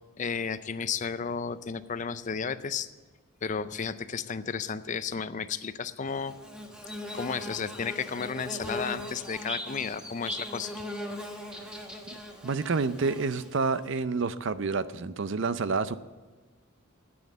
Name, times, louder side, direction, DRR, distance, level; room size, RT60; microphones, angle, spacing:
voice 1, 0.2-2.9 3.4-6.3 7.1-10.7, left 6 dB, 35° left, 14 dB, 0.4 m, -33 dB
Bird / Buzz, 6.1-13.8, left 1 dB, 5° right, 1.2 m, -39 dB
voice 2, 12.4-16.0, right 4 dB, 60° right, 14 dB, 0.5 m, -28 dB
10.0 x 8.7 x 7.9 m, 1.3 s
head